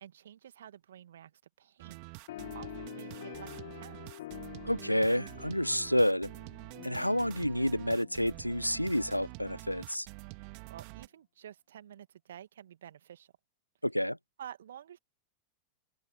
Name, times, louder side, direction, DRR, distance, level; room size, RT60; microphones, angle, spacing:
voice 1, 0.0-4.2 10.4-13.3 14.4-15.0, right 10 dB, 65° right, 2.3 m, -51 dB
sound 1, 1.8-11.1, right 40 dB or more, 45° right, 2.4 m, -47 dB
sound 2, 2.3-9.2, left 14 dB, 55° left, 1.9 m, -48 dB
voice 2, 4.6-6.3 6.8-10.1 13.8-14.2, equal, 90° left, 0.5 m, -29 dB
open air
figure-of-eight pair, 90°, 0 cm